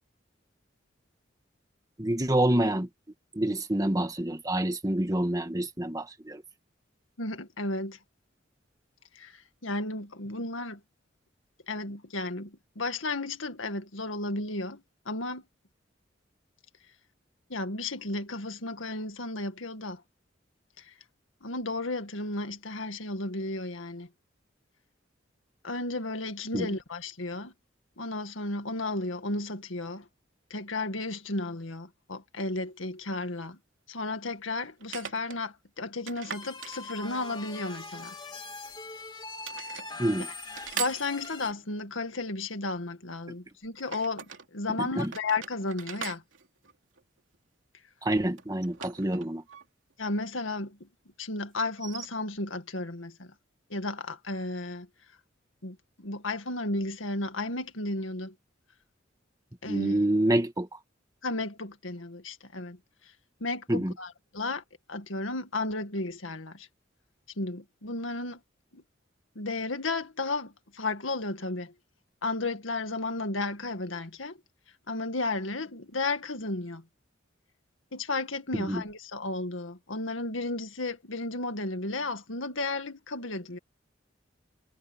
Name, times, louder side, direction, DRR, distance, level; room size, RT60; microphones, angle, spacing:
voice 1, 2.0-2.9 3.3-6.4 26.5-26.7 40.0-40.3 44.8-45.1 48.0-49.4 59.7-60.7 63.7-63.9 78.6-78.8, right 1 dB, 20° right, 1.6 m, -27 dB
voice 2, 7.2-8.0 9.2-9.3 9.6-10.8 11.7-12.5 12.8-15.4 17.5-20.0 21.4-24.1 25.6-27.5 28.0-30.0 30.5-33.6 33.9-38.1 40.8-46.2 50.0-50.9 51.2-53.3 53.7-54.9 55.6-58.3 59.6-60.0 61.2-62.8 63.4-64.6 64.9-66.7 67.4-68.4 68.7-68.8 69.4-71.7 72.2-74.4 74.9-76.8 77.9-83.6, left 2 dB, 85° left, 2.1 m, -33 dB
sound 1, 32.7-32.8 34.8-35.4 36.1-37.4 38.3-39.0 39.4-39.9 40.5-41.7 43.8-44.5 44.9-47.4 48.4-49.7 49.9-50.0 51.7-52.1, right 8 dB, 80° right, 3.1 m, -41 dB
sound 2, 36.3-41.5, left 3 dB, 20° left, 2.8 m, -42 dB
head